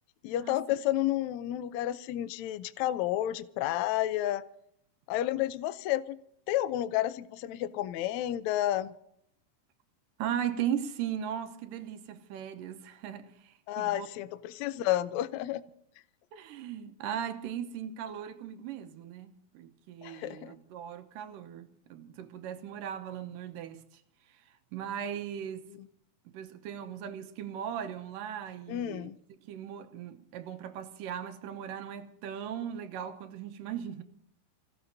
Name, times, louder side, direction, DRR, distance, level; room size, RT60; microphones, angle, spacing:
voice 1, 0.2-4.4 5.1-6.2 6.5-8.9 13.7-15.6 20.0-20.5 28.7-29.2, left 13 dB, 90° left, 1.6 m, -31 dB
voice 2, 10.2-14.1 16.3-24.0 24.3-25.7 26.3-29.1 29.4-34.0, right 9 dB, 75° right, 2.5 m, -38 dB
28.0 x 16.5 x 2.7 m
omnidirectional pair, 4.1 m